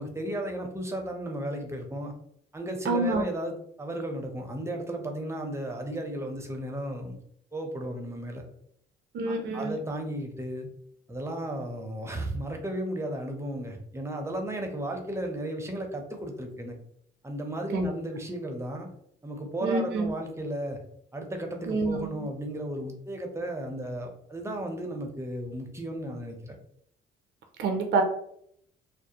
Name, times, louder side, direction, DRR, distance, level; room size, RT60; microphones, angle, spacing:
voice 1, 0.0-2.1 2.5-7.1 7.5-8.4 9.3-10.7 11.1-16.8 17.2-18.9 19.2-20.8 21.1-26.6, right 1 dB, 15° right, 3 dB, 0.5 m, -34 dB
voice 2, 2.9-3.2 9.1-9.8 17.7-17.9 19.6-20.1 21.7-22.1 27.6-28.0, right 3 dB, 65° right, 4 dB, 0.5 m, -27 dB
2.4 x 2.1 x 2.7 m, 0.71 s
cardioid pair, 90°, 20 cm